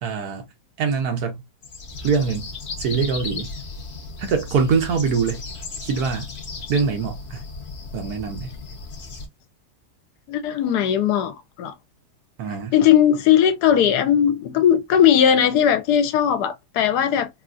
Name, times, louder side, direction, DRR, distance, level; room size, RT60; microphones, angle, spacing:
voice 1, 0.0-0.5 0.8-1.4 2.0-2.5 2.8-3.5 4.2-5.4 5.8-6.3 6.7-7.4 7.9-8.6 12.4-12.7, right 5 dB, 70° right, 1.3 m, -23 dB
sound 1, 1.6-9.3, left 3 dB, 50° left, 0.9 m, -35 dB
voice 2, 10.3-11.7 12.7-17.3, left 9 dB, 80° left, 1.1 m, -18 dB
3.6 x 2.4 x 2.4 m
omnidirectional pair, 1.7 m